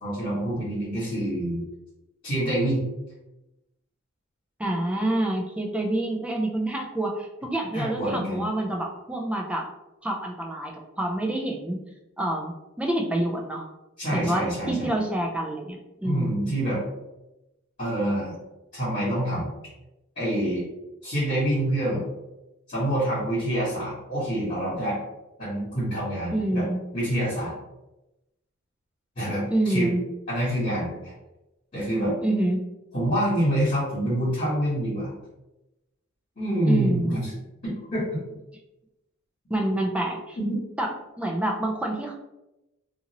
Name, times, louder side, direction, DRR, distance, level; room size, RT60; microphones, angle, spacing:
voice 1, 0.0-1.6 2.2-2.8 7.7-8.4 14.0-14.9 16.0-16.8 17.8-18.4 18.7-19.5 20.1-20.6 21.0-22.0 22.7-25.0 25.4-26.7 26.9-27.5 29.1-29.9 30.3-31.1 31.7-32.1 32.9-35.1 36.4-37.3 37.6-38.2 40.4-40.5, right 1 dB, 40° left, -11 dB, 1.5 m, -26 dB
voice 2, 4.6-9.7 10.0-11.8 12.2-12.5 12.8-13.7 14.1-16.5 26.3-26.8 29.5-30.0 32.2-32.6 36.7-37.2 39.5-40.4 40.8-40.9 41.2-42.1, right 1 dB, 5° right, 0 dB, 0.3 m, -27 dB
2.8 x 2.5 x 2.9 m, 0.97 s
head